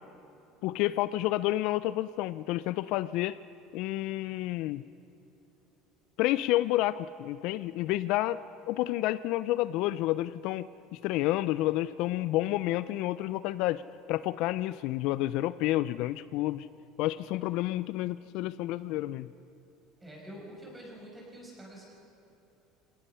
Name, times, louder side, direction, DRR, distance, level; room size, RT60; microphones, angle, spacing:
voice 1, 0.6-3.4 3.7-4.8 6.2-8.4 8.7-13.8 14.1-16.7 17.0-19.3, left 16 dB, 55° left, 15 dB, 0.3 m, -30 dB
voice 2, 20.0-21.9, equal, 10° right, -2 dB, 5.2 m, -46 dB
25.5 x 18.0 x 5.6 m, 2.9 s
cardioid pair, 165°, 0 cm